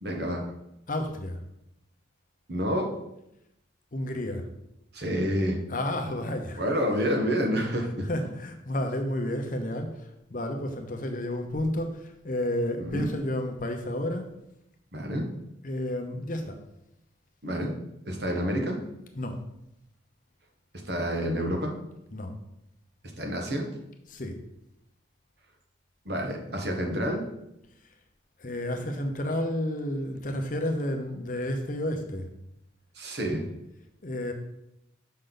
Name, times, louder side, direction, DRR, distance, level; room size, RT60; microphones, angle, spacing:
voice 1, 0.0-0.4 2.5-2.9 4.9-5.6 6.6-8.1 12.8-13.1 14.9-15.3 17.4-17.8 18.0-18.8 20.9-21.7 23.2-23.7 26.0-27.2 33.0-33.5, equal, 55° right, 2 dB, 1.3 m, -28 dB
voice 2, 0.9-1.4 3.9-4.5 5.7-6.6 8.1-9.9 10.3-14.3 15.6-16.6 19.1-19.4 22.1-22.3 24.1-24.3 28.4-32.3 34.0-34.3, left 1 dB, 45° left, 5 dB, 0.8 m, -31 dB
6.5 x 5.5 x 3.9 m, 0.83 s
head